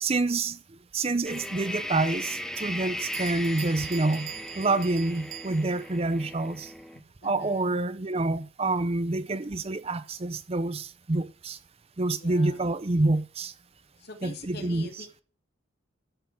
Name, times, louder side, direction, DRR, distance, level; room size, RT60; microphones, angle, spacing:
voice 1, 0.0-0.6 0.9-4.3 4.6-6.7 7.2-11.6 12.0-13.5 14.2-14.9, right 2 dB, 30° right, 0.6 m, -27 dB
sound 1, 1.2-7.0, left 1 dB, 5° left, 0.9 m, -37 dB
Bell, 3.1-5.9, right 17 dB, 70° right, 0.6 m, -43 dB
voice 2, 6.9-7.8 12.2-12.6 14.0-15.2, left 3 dB, 55° left, 2.7 m, -44 dB
13.0 x 6.7 x 8.4 m
head